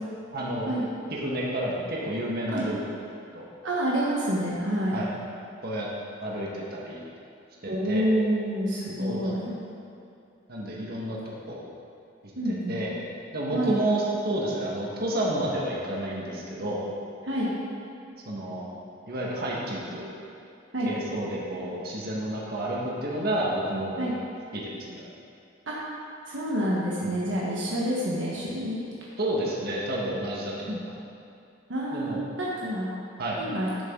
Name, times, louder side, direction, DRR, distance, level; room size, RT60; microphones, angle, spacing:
voice 1, 0.3-0.7 1.1-2.8 3.3-3.4 4.9-5.1 5.6-5.9 6.2-7.0 7.6-8.0 9.0-9.4 10.5-11.6 12.4-13.0 13.3-16.8 18.2-18.7 19.1-20.1 20.8-24.1 24.5-25.0 27.0-27.2 29.2-30.9 31.9-32.2 33.2-33.4, right 1 dB, 55° right, -4 dB, 1.7 m, -30 dB
voice 2, 3.6-5.0 7.7-9.5 12.4-12.8 13.5-13.8 17.2-17.5 20.7-20.9 24.0-24.1 25.7-25.8 26.3-28.8 30.7-30.8 31.7-32.1 32.4-32.9 33.4-33.7, equal, 70° right, -6 dB, 1.4 m, -28 dB
11.5 x 7.2 x 3.9 m, 2.5 s
head